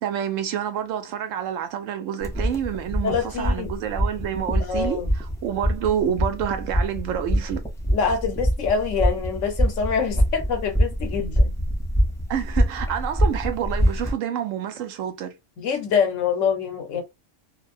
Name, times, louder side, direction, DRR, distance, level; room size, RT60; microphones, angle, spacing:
voice 1, 0.0-5.0 5.4-7.6 12.3-15.3, right 9 dB, 85° right, 1.0 m, -28 dB
sound 1, 2.2-14.1, equal, 5° left, 0.3 m, -24 dB
voice 2, 3.0-3.7 4.6-5.1 7.9-11.5 15.6-17.0, left 6 dB, 80° left, 1.1 m, -25 dB
2.4 x 2.2 x 2.4 m
omnidirectional pair, 1.3 m